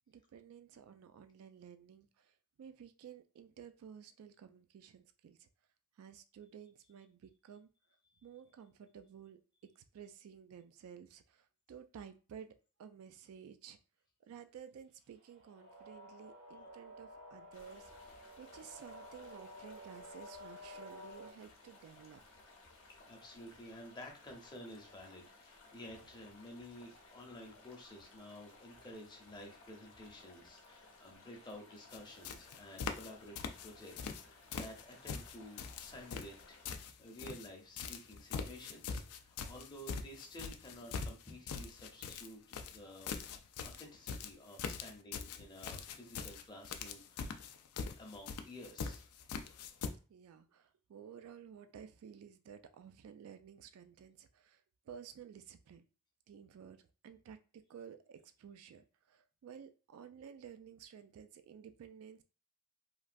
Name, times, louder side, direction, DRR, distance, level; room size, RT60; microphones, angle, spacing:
voice 1, 0.1-5.5 6.0-7.7 8.2-13.8 14.3-22.2 50.1-55.8 56.3-62.2, right 8 dB, 75° right, 9 dB, 0.3 m, -54 dB
sound 1, 15.1-21.3, left 1 dB, 60° right, 0.8 m, -52 dB
sound 2, 17.5-36.8, left 3 dB, 65° left, 0.7 m, -60 dB
voice 2, 23.0-43.1 43.6-47.4 48.0-49.1, left 1 dB, 20° left, 0 dB, 0.7 m, -52 dB
sound 3, 31.9-32.0 32.2-33.1 33.3-34.2 34.5-37.5 37.8-49.9, left 5 dB, 90° left, 0.4 m, -43 dB
3.1 x 2.3 x 2.5 m, 0.35 s
head